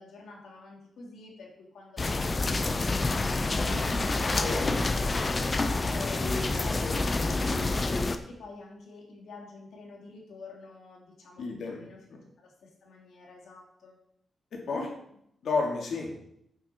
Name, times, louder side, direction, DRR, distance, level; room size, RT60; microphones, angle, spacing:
voice 1, 0.0-3.2 3.6-6.3 6.5-6.9 7.3-12.0 12.4-14.0, left 2 dB, 85° left, -1 dB, 2.9 m, -46 dB
sound 1, 2.0-8.2, left 3 dB, 25° left, 0.7 m, -28 dB
voice 2, 4.4-4.8 6.2-7.2 11.4-11.8 12.1-12.2 14.5-14.9 15.4-16.1, left 3 dB, 70° left, 0 dB, 2.8 m, -32 dB
9.1 x 8.0 x 4.6 m, 0.73 s
wide cardioid pair, 160°, 0 cm